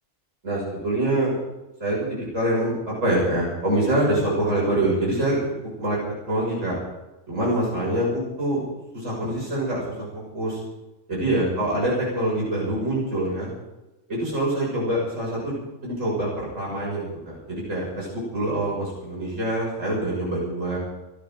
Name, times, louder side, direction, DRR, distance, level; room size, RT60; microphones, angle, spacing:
voice 1, 0.4-1.3 1.8-5.4 5.8-6.0 6.3-6.8 7.3-8.6 8.9-10.6 11.1-13.5 14.1-15.5 15.8-20.8, right 1 dB, 85° right, -5 dB, 6.6 m, -25 dB
29.5 x 12.0 x 3.9 m, 1.0 s
omnidirectional pair, 1.3 m